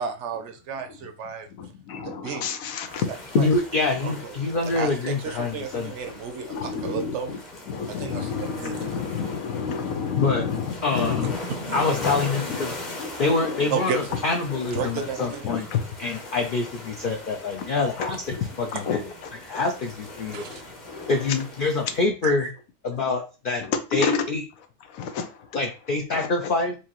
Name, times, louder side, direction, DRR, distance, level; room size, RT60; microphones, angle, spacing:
voice 1, 0.0-1.5 2.0-2.5 3.1-3.5 4.0-4.3 4.7-7.3 7.9-8.9 13.1-13.2 13.7-14.2 14.7-15.5 20.3-20.6 22.2-22.5, right 6 dB, 65° right, 7 dB, 0.9 m, -32 dB
voice 2, 1.5-3.1 4.7-4.8 6.5-7.4 7.7-11.4 11.7-12.2 13.0-13.6 14.7-14.8 15.4-16.3 17.6-17.7 18.0-18.1 18.4-18.5 18.7-19.7 20.5-20.6 20.9-21.4 23.6-24.3 24.9-25.5 26.1-26.3, left 6 dB, 90° left, 8 dB, 1.1 m, -30 dB
sound 1, 2.9-22.0, left 1 dB, 35° left, 1.0 m, -39 dB
voice 3, 3.3-5.9 10.1-10.5 10.8-11.2 11.7-12.7 13.2-15.7 16.0-19.1 19.5-20.5 21.1-22.5 22.8-23.6 23.9-24.4 25.5-26.7, left 3 dB, 60° left, 3 dB, 0.6 m, -25 dB
4.6 x 2.6 x 2.9 m, 0.33 s
omnidirectional pair, 1.4 m